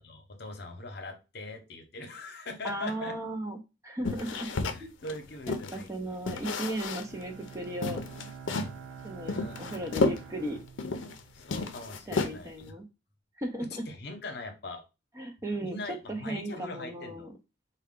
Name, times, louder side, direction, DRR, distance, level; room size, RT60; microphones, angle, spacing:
voice 1, 0.0-3.2 4.7-6.2 9.3-10.4 11.3-12.7 13.7-14.8 15.6-17.3, left 2 dB, 55° left, 5 dB, 0.8 m, -42 dB
voice 2, 2.6-4.9 5.5-8.0 9.0-10.6 12.1-12.9 13.4-13.8 15.2-17.3, right 1 dB, 15° right, 5 dB, 0.5 m, -36 dB
sound 1, 4.0-5.8 6.3-7.2 7.5-7.6 7.8-8.8 9.3-11.2 11.5-12.6, left 3 dB, 80° left, 0.5 m, -32 dB
Bowed string instrument, 6.9-11.9, right 6 dB, 85° right, 0.4 m, -47 dB
4.5 x 2.2 x 3.6 m, 0.27 s
head